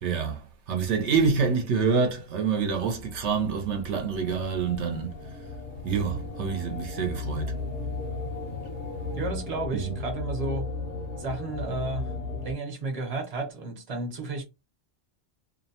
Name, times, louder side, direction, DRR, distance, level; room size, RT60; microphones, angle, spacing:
voice 1, 0.0-5.2 5.8-7.5, right 5 dB, 75° right, 0.9 m, -27 dB
sound 1, 2.7-12.5, left 3 dB, 80° left, 0.9 m, -35 dB
voice 2, 9.1-10.7 11.2-12.1 12.4-14.4, right 3 dB, 40° right, 0.8 m, -32 dB
2.6 x 2.1 x 2.7 m
omnidirectional pair, 1.2 m